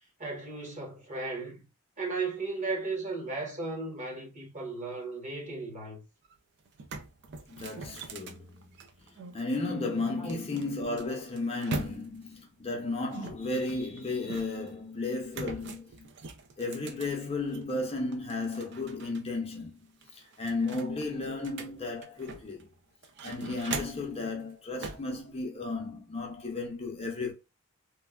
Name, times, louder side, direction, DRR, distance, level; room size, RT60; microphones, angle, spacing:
voice 1, 0.2-1.6 2.0-6.0 10.2-10.4, right 3 dB, 35° right, 1.1 m, -35 dB
sound 1, 6.2-6.3 6.7-9.4 10.3-12.3 13.1-14.7 15.3-17.7 18.1-19.2 19.5-19.6 20.0-22.6 23.0-24.2 24.8-25.1, right 4 dB, 55° right, 0.4 m, -41 dB
voice 2, 7.5-16.1 16.6-19.9 20.1-22.7 23.2-27.3, left 3 dB, 30° left, 0.7 m, -34 dB
3.1 x 2.2 x 2.3 m
head